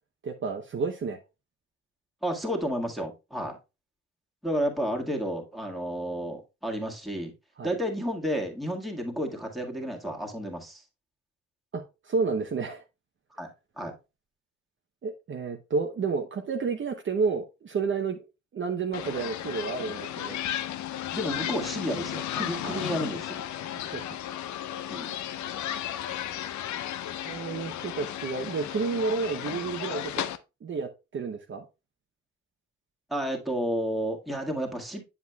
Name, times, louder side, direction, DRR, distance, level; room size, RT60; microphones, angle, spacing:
voice 1, 0.2-1.2 7.6-7.7 11.7-12.8 15.0-18.2 18.5-20.4 22.6-22.8 23.7-24.2 27.3-30.3 30.6-31.6, right 5 dB, 40° right, 0.8 m, -31 dB
voice 2, 2.2-3.6 4.4-7.3 7.6-10.8 13.4-13.5 13.8-13.9 21.1-23.4 24.9-25.1 33.1-35.0, equal, ahead, 1.7 m, -31 dB
sound 1, 18.9-30.4, left 11 dB, 70° left, 0.6 m, -34 dB
8.0 x 7.3 x 2.3 m
cardioid pair, 90°, 30 cm